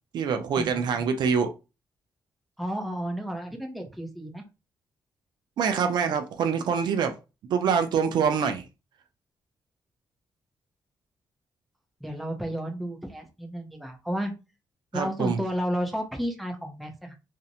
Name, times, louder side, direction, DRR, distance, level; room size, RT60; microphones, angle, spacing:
voice 1, 0.1-1.5 5.6-7.1 7.5-8.6 14.9-15.4, right 6 dB, 70° right, 7 dB, 0.4 m, -25 dB
voice 2, 2.6-4.4 12.0-14.3 14.9-17.1, equal, ahead, 2 dB, 0.5 m, -32 dB
2.5 x 2.1 x 2.7 m, 0.28 s
wide cardioid pair, 150°, 8 cm